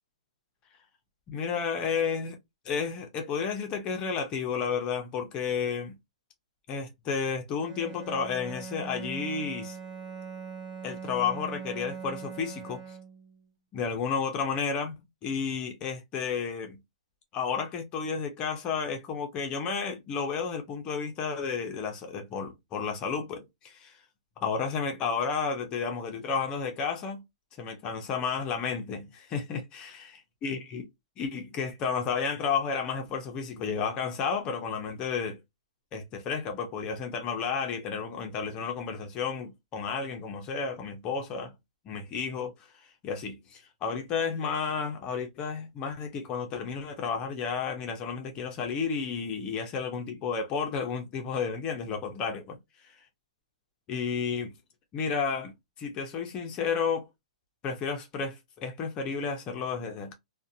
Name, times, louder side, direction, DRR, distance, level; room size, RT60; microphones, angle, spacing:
voice 1, 1.3-2.4 2.7-5.9 6.7-9.8 10.8-13.0 13.7-14.9 15.2-16.8 17.3-24.0 24.4-27.2 27.6-30.1 30.4-30.8 31.2-35.4 35.9-41.5 41.9-42.5 43.0-52.6 53.9-54.5 54.9-55.5 55.8-57.0 57.6-60.1, left 6 dB, 20° left, 0.4 m, -32 dB
Bowed string instrument, 7.6-13.4, right 6 dB, 40° right, 0.7 m, -41 dB
2.5 x 2.0 x 2.5 m
hypercardioid pair, 155°, 4 cm